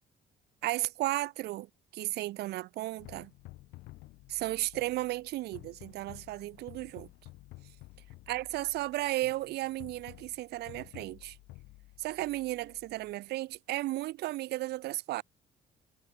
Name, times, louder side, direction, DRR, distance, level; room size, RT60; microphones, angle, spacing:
voice 1, 0.6-3.3 4.3-7.1 8.3-11.4 12.0-15.2, right 17 dB, 75° right, 1.0 m, -34 dB
sound 1, 3.0-13.1, left 19 dB, 85° left, 1.6 m, -53 dB
cardioid pair, 110°, 17 cm